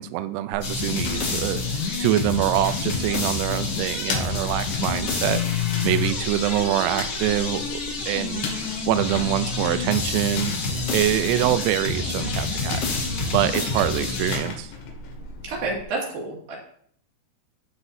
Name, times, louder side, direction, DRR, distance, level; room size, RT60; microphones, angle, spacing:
voice 1, 0.0-5.4 5.8-8.5 8.8-10.5 10.9-12.8 13.3-14.7, right 13 dB, 80° right, 10 dB, 2.6 m, -25 dB
sound 1, 0.5-15.8, left 3 dB, 80° left, 3.8 m, -37 dB
sound 2, 0.6-14.4, left 4 dB, 55° left, 1.8 m, -28 dB
voice 2, 15.4-16.6, right 3 dB, 60° right, -3 dB, 3.7 m, -29 dB
15.0 x 6.0 x 2.7 m, 0.63 s
omnidirectional pair, 5.0 m